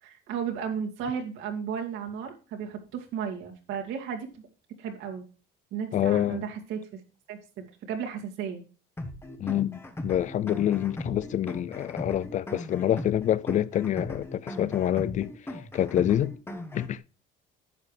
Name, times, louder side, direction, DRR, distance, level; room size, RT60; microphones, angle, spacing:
voice 1, 0.0-4.5 4.8-5.3 5.7-7.0 7.3-8.6, right 7 dB, 85° right, 2.4 m, -34 dB
voice 2, 5.9-6.4 9.4-15.3 15.7-16.3 16.7-17.0, left 11 dB, 40° left, 0.4 m, -26 dB
sound 1, 9.0-17.0, left 1 dB, 10° left, 1.1 m, -39 dB
11.0 x 8.2 x 3.3 m
cardioid pair, 150°, 20 cm